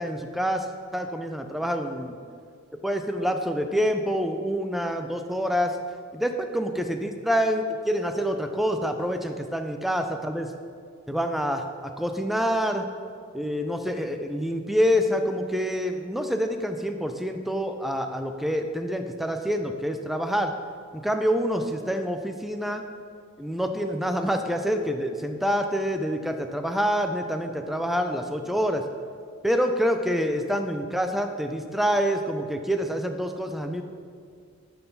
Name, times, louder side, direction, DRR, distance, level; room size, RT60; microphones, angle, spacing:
voice 1, 0.0-2.1 2.8-5.8 6.1-10.5 11.1-12.9 13.3-20.5 20.9-22.8 23.4-28.8 29.4-33.8, equal, ahead, 6 dB, 0.3 m, -27 dB
9.9 x 3.7 x 4.0 m, 2.3 s
head